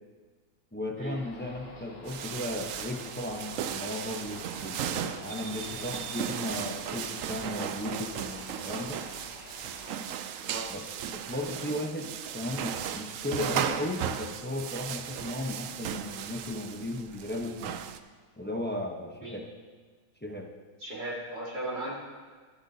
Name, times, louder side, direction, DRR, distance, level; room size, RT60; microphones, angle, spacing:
voice 1, 0.7-9.0 10.7-10.8 11.1-12.1 12.3-17.8 18.4-19.4 20.2-20.5, left 1 dB, 10° left, 1 dB, 0.5 m, -36 dB
sound 1, 1.1-10.0, left 2 dB, 40° left, 1.7 m, -48 dB
sound 2, 2.1-18.0, right 9 dB, 70° right, 0.8 m, -36 dB
voice 2, 10.4-10.7 19.2-19.5 20.8-21.9, right 1 dB, 30° right, -4 dB, 2.2 m, -37 dB
22.0 x 8.1 x 2.8 m, 1.5 s
omnidirectional pair, 1.7 m